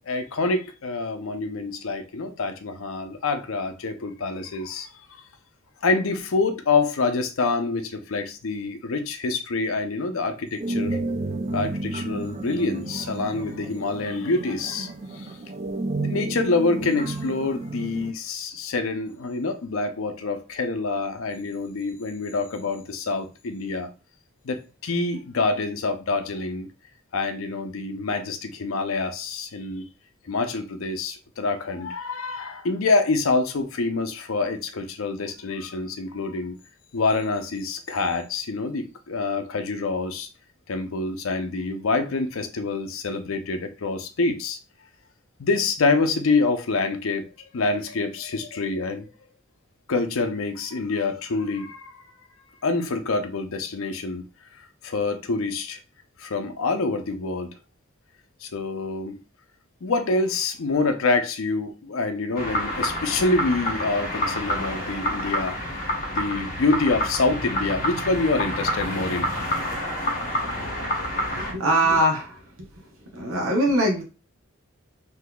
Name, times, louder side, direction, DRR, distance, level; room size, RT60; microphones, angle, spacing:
voice 1, 0.1-4.9 5.8-11.0 11.5-15.3 16.0-23.9 24.4-26.7 27.1-29.8 30.3-36.6 36.9-40.3 40.7-44.6 45.4-47.2 47.5-49.1 49.9-52.0 52.6-54.2 54.8-55.8 56.2-57.5 58.4-59.2 59.8-69.3, left 3 dB, 70° left, 0.5 m, -26 dB
sound 1, 10.6-18.1, right 2 dB, 30° right, 0.3 m, -31 dB
sound 2, 62.4-71.5, left 1 dB, 45° left, 1.3 m, -28 dB
voice 2, 71.3-72.7 73.0-74.0, right 1 dB, 80° right, 0.8 m, -23 dB
3.8 x 2.7 x 2.2 m
head